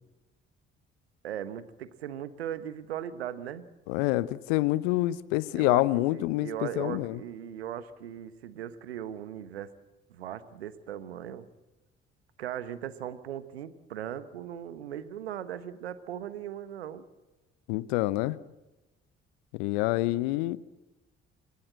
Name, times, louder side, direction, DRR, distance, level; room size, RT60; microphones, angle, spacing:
voice 1, 1.2-3.7 5.5-5.8 6.1-9.7 10.1-11.4 12.4-17.0, right 10 dB, 80° right, 14 dB, 1.3 m, -38 dB
voice 2, 3.9-7.2 17.7-18.4 19.5-20.6, left 18 dB, 70° left, 19 dB, 0.9 m, -27 dB
29.5 x 15.5 x 7.6 m, 1.1 s
figure-of-eight pair, 45°, 31 cm